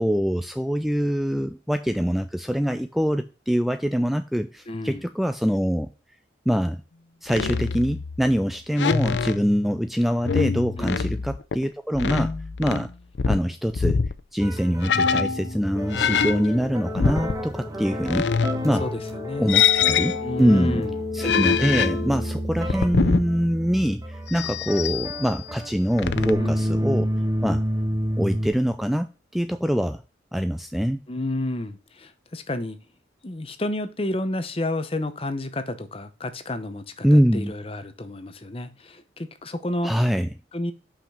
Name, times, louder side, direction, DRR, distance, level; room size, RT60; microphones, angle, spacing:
voice 1, 0.0-5.9 6.5-6.8 7.2-12.3 12.6-12.9 13.3-14.0 14.3-18.3 18.6-18.9 19.4-20.8 21.1-27.1 27.4-27.6 28.2-30.0 30.3-31.0 37.0-37.5 39.8-40.3, equal, ahead, 0.3 m, -24 dB
voice 2, 4.7-5.1 10.8-11.2 18.8-19.5 20.2-20.9 26.4-26.6 31.1-32.8 33.2-39.9 40.5-40.7, left 1 dB, 30° left, 0.8 m, -31 dB
sound 1, 7.3-8.5 8.8-9.8 10.2-11.7 11.9-12.9 13.1-14.2 14.8-15.6 15.9-17.4 18.1-19.0 19.5-20.6 21.2-23.3 24.3-25.4 26.0-26.3, left 6 dB, 80° left, 0.5 m, -25 dB
sound 2, 14.4-28.5, equal, 20° right, 1.2 m, -29 dB
5.9 x 5.0 x 5.8 m
head